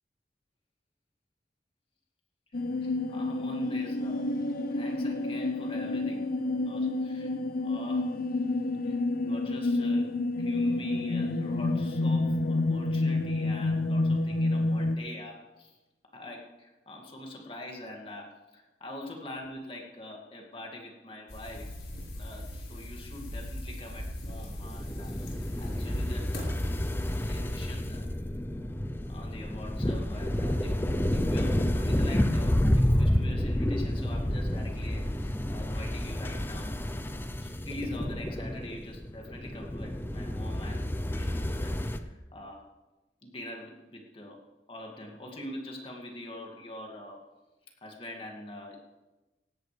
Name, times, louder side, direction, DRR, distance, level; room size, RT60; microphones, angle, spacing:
sound 1, 2.5-15.0, left 2 dB, 55° left, 0.7 m, -29 dB
voice 1, 2.8-4.3 4.7-6.3 6.6-8.1 8.8-15.8 16.1-21.8 22.1-26.6 27.1-28.1 29.1-36.8 37.4-42.7 43.2-47.2 47.8-48.8, left 1 dB, 30° left, 0 dB, 2.3 m, -44 dB
sound 2, 21.3-27.9, left 1 dB, 80° left, 5.7 m, -40 dB
sound 3, 24.4-42.0, left 1 dB, 10° left, 0.7 m, -30 dB
18.0 x 16.5 x 3.4 m, 1.1 s
head